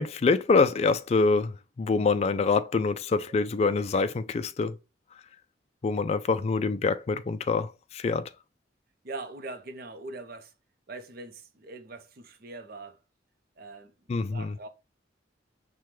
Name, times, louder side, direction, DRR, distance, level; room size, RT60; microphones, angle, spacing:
voice 1, 0.0-4.8 5.8-8.3 14.1-14.6, left 4 dB, 35° left, 0.3 m, -25 dB
voice 2, 9.0-10.5 10.9-13.0 13.6-14.7, right 2 dB, 55° right, 0.6 m, -42 dB
5.8 x 2.2 x 3.1 m
head